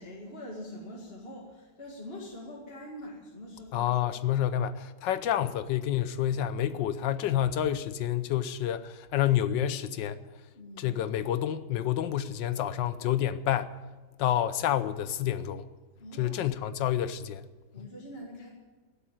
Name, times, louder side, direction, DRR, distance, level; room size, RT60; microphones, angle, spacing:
voice 1, 0.0-3.9 10.5-10.9 16.0-16.4 17.7-18.5, left 1 dB, 30° left, 2.3 m, -44 dB
voice 2, 3.7-10.2 10.8-13.7 14.2-15.7 16.2-17.4, left 11 dB, 80° left, 1.5 m, -28 dB
16.0 x 8.6 x 9.0 m
omnidirectional pair, 2.0 m